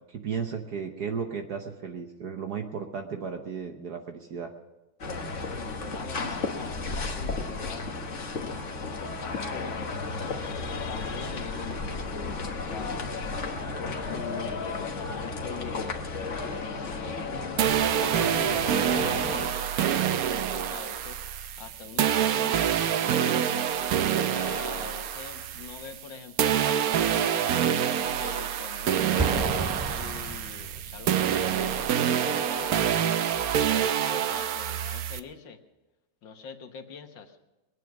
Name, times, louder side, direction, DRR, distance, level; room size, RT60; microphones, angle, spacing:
voice 1, 0.1-4.5, right 6 dB, 55° right, 4 dB, 1.4 m, -34 dB
sound 1, 5.0-19.5, left 3 dB, 40° left, 1.4 m, -33 dB
voice 2, 5.4-7.9 8.3-10.0 10.6-12.0 12.6-13.1 13.8-15.9 16.2-21.2 21.6-23.4 24.2-29.2 29.9-33.1 33.4-35.6 36.2-37.4, left 6 dB, 65° left, 6 dB, 1.8 m, -43 dB
sound 2, 17.6-26.1 26.4-35.2, right 9 dB, 70° right, 0.8 m, -26 dB
Explosion, 29.2-31.0, right 2 dB, 5° right, 1.0 m, -32 dB
22.0 x 9.5 x 6.1 m, 1.1 s
omnidirectional pair, 2.3 m